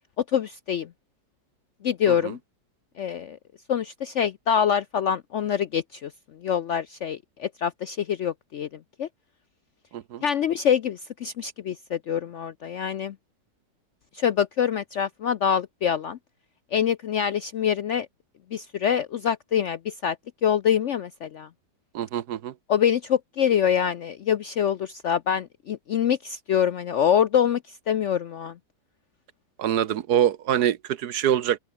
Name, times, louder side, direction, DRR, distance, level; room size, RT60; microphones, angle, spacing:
voice 1, 0.3-0.9 1.8-2.4 3.0-3.4 3.7-6.1 6.4-8.7 9.0-9.1 10.2-13.1 14.1-16.2 16.7-18.1 18.5-20.2 20.4-21.5 22.7-27.6 27.9-28.5, left 8 dB, 65° left, 0.7 m, -25 dB
voice 2, 9.9-10.2 21.9-22.5 29.6-31.6, right 10 dB, 70° right, 1.4 m, -25 dB
open air
omnidirectional pair, 1.8 m